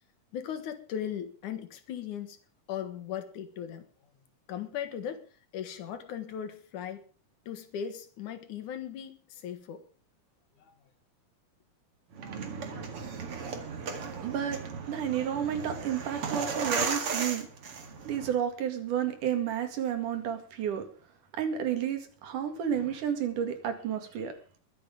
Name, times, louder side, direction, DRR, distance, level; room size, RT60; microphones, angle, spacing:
voice 1, 0.3-2.4 2.7-3.8 4.5-5.3 5.5-7.0 7.5-9.8 10.6-10.7, left 9 dB, 65° left, 2.9 m, -38 dB
sound 1, 12.1-18.3, right 5 dB, 45° right, 2.5 m, -35 dB
voice 2, 14.2-14.6 14.9-17.5 18.1-20.9 21.4-24.3, right 9 dB, 70° right, 3.5 m, -31 dB
22.5 x 7.7 x 5.1 m
omnidirectional pair, 3.9 m